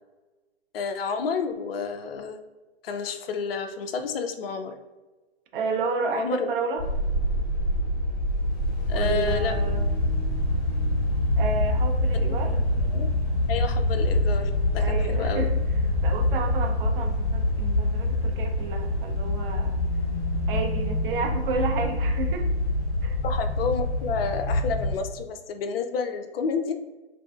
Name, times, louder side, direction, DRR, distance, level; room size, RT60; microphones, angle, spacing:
voice 1, 0.7-2.4 2.8-4.7 6.1-6.5 8.9-9.5 12.1-13.1 13.5-15.5 23.2-26.7, left 5 dB, 60° left, 7 dB, 0.4 m, -30 dB
voice 2, 5.5-6.8 8.9-9.9 11.4-12.6 14.8-15.6 16.0-19.8 20.5-22.5 23.0-23.2, right 3 dB, 55° right, 4 dB, 0.6 m, -31 dB
sound 1, 6.8-24.9, left 1 dB, 35° left, 1.2 m, -25 dB
3.1 x 2.5 x 2.3 m, 1.2 s
hypercardioid pair, 130°, 33 cm